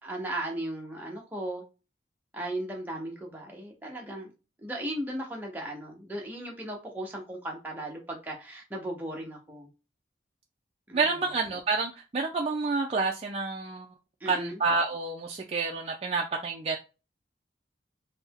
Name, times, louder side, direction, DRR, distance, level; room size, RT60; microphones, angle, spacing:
voice 1, 0.0-1.6 2.3-4.3 4.6-9.7 10.9-11.2 14.2-14.6, right 1 dB, 10° right, 0.7 m, -36 dB
voice 2, 10.9-13.9 14.3-16.8, right 4 dB, 35° right, 0.3 m, -29 dB
3.2 x 2.1 x 3.5 m
head